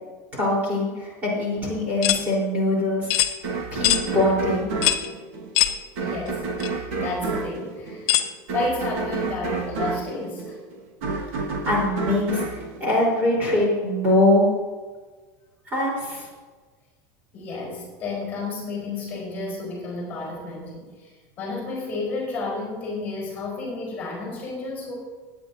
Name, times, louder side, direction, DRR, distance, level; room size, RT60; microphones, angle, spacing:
voice 1, 0.3-3.1 3.7-4.7 11.7-14.5 15.7-16.3, left 1 dB, 20° right, -5 dB, 3.9 m, -22 dB
sound 1, 2.0-2.2 3.1-3.3 3.8-4.0 4.8-5.1 5.5-5.8 6.6-6.7 8.1-8.3, left 13 dB, 40° left, 0.7 m, -21 dB
sound 2, 3.4-13.7, right 4 dB, 60° right, 1.7 m, -30 dB
voice 2, 6.0-8.2 8.5-10.6 17.3-24.9, left 3 dB, 20° left, -2 dB, 4.1 m, -31 dB
21.5 x 9.2 x 2.7 m, 1.4 s
supercardioid pair, 175°, 9 cm